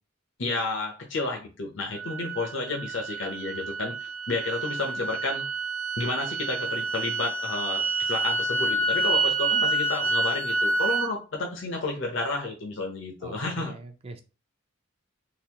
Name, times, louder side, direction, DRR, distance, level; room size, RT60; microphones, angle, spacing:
voice 1, 0.4-5.4 6.0-13.8, left 3 dB, 65° left, 0 dB, 0.8 m, -31 dB
sound 1, 1.9-11.1, right 2 dB, 85° right, 0.7 m, -28 dB
voice 2, 13.2-14.2, right 2 dB, 30° right, 7 dB, 0.4 m, -43 dB
3.9 x 2.5 x 2.9 m, 0.32 s
head